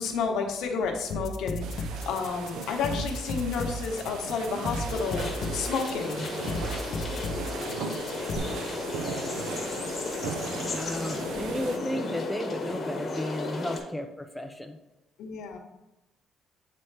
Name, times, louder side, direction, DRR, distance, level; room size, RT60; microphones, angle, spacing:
voice 1, 0.0-1.6 2.0-6.2 15.2-15.6, left 5 dB, 75° left, 3 dB, 1.0 m, -31 dB
sound 1, 1.1-8.4, left 2 dB, 55° left, 0.6 m, -34 dB
sound 2, 1.6-11.8, right 5 dB, 80° right, 0.6 m, -38 dB
sound 3, 4.9-13.8, left 3 dB, 35° left, 1.0 m, -34 dB
voice 2, 10.7-14.8, left 1 dB, ahead, 3 dB, 0.4 m, -34 dB
7.5 x 4.2 x 3.3 m, 0.98 s
cardioid pair, 160°, 0 cm